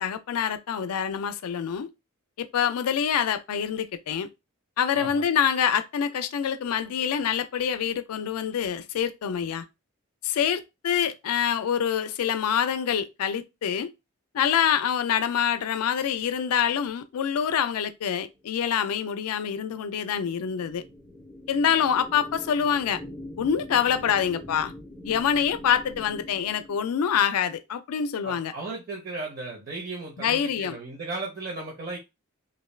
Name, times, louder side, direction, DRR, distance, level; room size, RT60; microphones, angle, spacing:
voice 1, 0.0-1.9 2.4-4.3 4.8-9.6 10.2-13.9 14.3-20.8 21.5-23.0 23.4-24.7 25.0-28.5 30.2-30.8, left 8 dB, 85° left, 0.4 m, -26 dB
sound 1, 18.6-27.2, left 1 dB, ahead, 0.4 m, -44 dB
voice 2, 28.2-32.0, right 3 dB, 40° right, 0.6 m, -36 dB
2.5 x 2.3 x 3.2 m
head